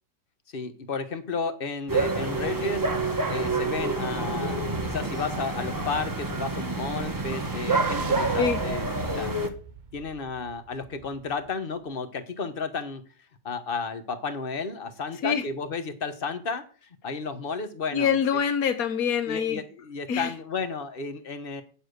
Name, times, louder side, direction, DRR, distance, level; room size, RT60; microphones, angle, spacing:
voice 1, 0.5-9.4 9.9-13.0 13.4-18.1 19.3-21.6, left 4 dB, 35° left, 1.3 m, -33 dB
sound 1, 1.9-9.5, right 3 dB, 15° right, 1.0 m, -28 dB
sound 2, 6.5-11.6, right 5 dB, 50° right, 0.5 m, -42 dB
voice 2, 17.9-19.6 20.1-20.3, left 7 dB, 65° left, 1.5 m, -25 dB
9.2 x 7.2 x 6.6 m
omnidirectional pair, 1.7 m